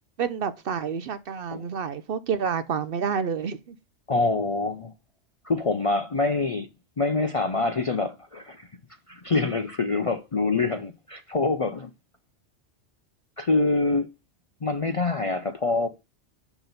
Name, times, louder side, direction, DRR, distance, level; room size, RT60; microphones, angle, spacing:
voice 1, 0.2-3.8, right 6 dB, 60° right, 0.7 m, -29 dB
voice 2, 4.1-4.9 5.4-6.7 7.0-8.7 9.1-11.9 13.4-14.1 14.6-15.9, left 3 dB, 45° left, 0.4 m, -25 dB
6.9 x 6.0 x 4.0 m
omnidirectional pair, 1.2 m